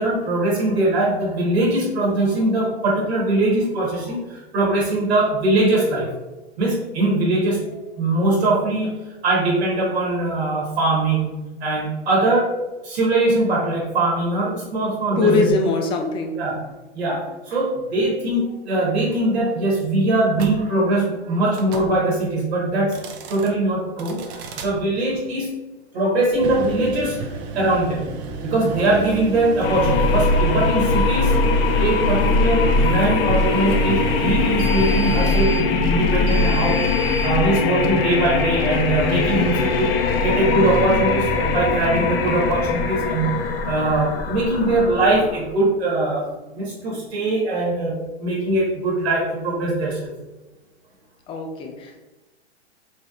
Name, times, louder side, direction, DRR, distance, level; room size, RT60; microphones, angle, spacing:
voice 1, 0.0-6.1 6.6-8.9 9.2-11.3 11.6-12.5 12.8-15.5 16.4-16.6 16.9-23.0 23.3-24.2 24.6-25.6 25.9-27.2 27.5-28.1 28.4-31.3 31.8-36.9 37.2-39.9 40.2-46.3 46.5-50.1, right 2 dB, 70° right, -4 dB, 1.4 m, -21 dB
voice 2, 15.2-16.4 51.3-52.0, left 3 dB, 15° left, 3 dB, 0.3 m, -21 dB
sound 1, 20.3-20.6 21.5-21.9 22.8-23.5 24.0-24.7 26.3-37.3, right 3 dB, 35° right, 0.5 m, -31 dB
sound 2, 29.6-45.5, left 4 dB, 60° left, 0.6 m, -21 dB
4.1 x 3.0 x 2.4 m, 1.1 s
hypercardioid pair, 110°, 33 cm